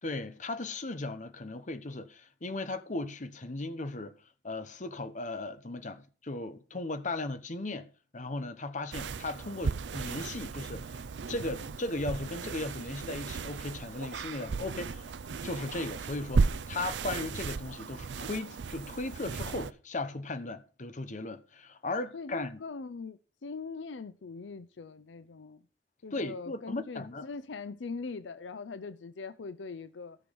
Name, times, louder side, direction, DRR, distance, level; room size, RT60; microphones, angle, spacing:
voice 1, 0.0-4.1 4.4-11.0 11.3-15.1 15.4-22.6 26.1-27.3, left 2 dB, 45° left, 1.1 m, -37 dB
sound 1, 8.9-19.7, right 4 dB, 75° right, 0.5 m, -35 dB
voice 2, 22.1-25.6 26.0-30.2, left 4 dB, 85° left, 0.6 m, -41 dB
13.5 x 6.2 x 5.3 m
head